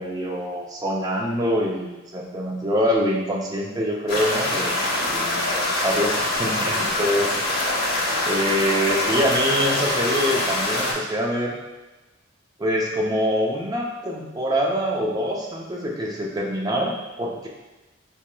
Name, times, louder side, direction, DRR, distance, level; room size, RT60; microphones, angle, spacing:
voice 1, 0.0-7.3 8.2-11.5 12.6-17.5, equal, 20° right, -2 dB, 0.5 m, -25 dB
sound 1, 4.1-10.9, left 1 dB, 50° left, 0.9 m, -24 dB
4.1 x 3.1 x 2.2 m, 1.1 s
head